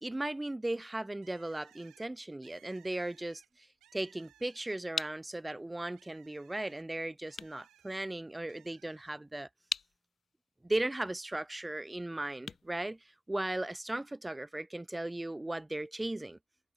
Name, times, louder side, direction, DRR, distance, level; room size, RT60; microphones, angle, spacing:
voice 1, 0.0-9.5 10.6-16.4, right 1 dB, 10° right, 0.6 m, -37 dB
Bird, 1.2-5.1 5.4-8.0 8.5-9.1, right 12 dB, 75° right, 3.6 m, -64 dB
sound 1, 4.3-13.7, left 6 dB, 45° left, 1.6 m, -45 dB
cardioid pair, 90°, 0 cm